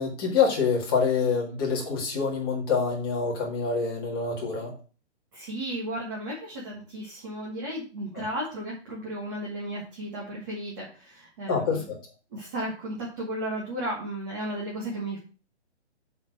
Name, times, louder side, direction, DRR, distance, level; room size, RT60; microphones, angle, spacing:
voice 1, 0.0-4.7 8.1-8.2 11.5-12.0, left 5 dB, 20° left, -3 dB, 1.9 m, -26 dB
voice 2, 5.3-11.9 12.3-15.2, right 1 dB, 20° right, -3 dB, 1.4 m, -34 dB
7.3 x 4.4 x 6.0 m, 0.36 s
hypercardioid pair, 175°, 34 cm